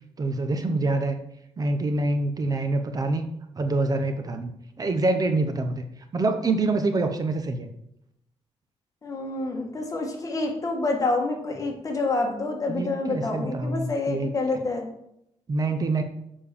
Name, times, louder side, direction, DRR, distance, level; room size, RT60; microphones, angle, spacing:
voice 1, 0.2-1.2 1.6-3.3 3.6-4.5 4.8-5.8 6.1-7.7 12.7-14.6 15.5-16.0, right 2 dB, 35° right, 7 dB, 0.7 m, -26 dB
voice 2, 9.0-14.9, left 2 dB, 30° left, 2 dB, 1.5 m, -27 dB
6.8 x 5.4 x 6.9 m, 0.78 s
wide cardioid pair, 165°, 11 cm